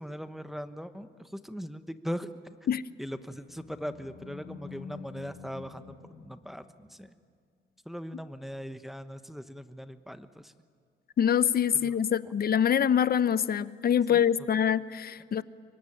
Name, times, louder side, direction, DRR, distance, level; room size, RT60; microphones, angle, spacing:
voice 1, 0.0-2.6 3.0-7.1 7.8-10.5 11.8-12.0 12.2-12.3 14.1-14.3, equal, ahead, 1.2 m, -40 dB
Animal, 2.7-7.2, left 6 dB, 75° left, 4.9 m, -48 dB
voice 2, 11.2-15.4, left 8 dB, 50° left, 0.9 m, -25 dB
25.5 x 23.0 x 9.9 m
cardioid pair, 90°, 20 cm